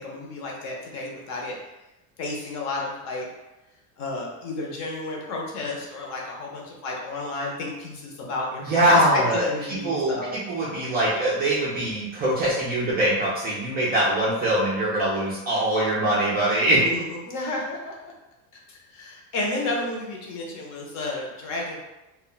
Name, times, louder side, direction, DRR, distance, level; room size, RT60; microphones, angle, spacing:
voice 1, 0.0-1.6 2.2-3.3 4.0-10.4 16.8-18.1 18.7-21.8, left 2 dB, 40° left, -1 dB, 0.6 m, -31 dB
voice 2, 8.6-16.8, right 1 dB, 25° right, -7 dB, 0.4 m, -23 dB
2.2 x 2.0 x 3.7 m, 0.99 s
cardioid pair, 155°, 42 cm